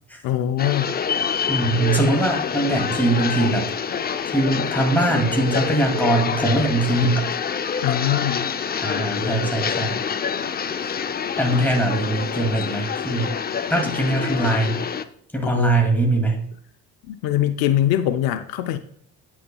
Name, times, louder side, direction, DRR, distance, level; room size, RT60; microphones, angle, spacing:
voice 1, 0.2-0.9 7.8-8.5 15.4-15.7 17.1-18.8, left 12 dB, 80° left, 0.6 m, -22 dB
sound 1, 0.6-15.0, left 7 dB, 25° left, 0.5 m, -26 dB
voice 2, 1.5-3.7 4.3-7.3 8.8-10.0 11.4-13.3 13.7-14.8 15.3-16.4, right 2 dB, 5° left, 2.4 m, -21 dB
9.0 x 5.9 x 2.3 m
supercardioid pair, 75°, 36 cm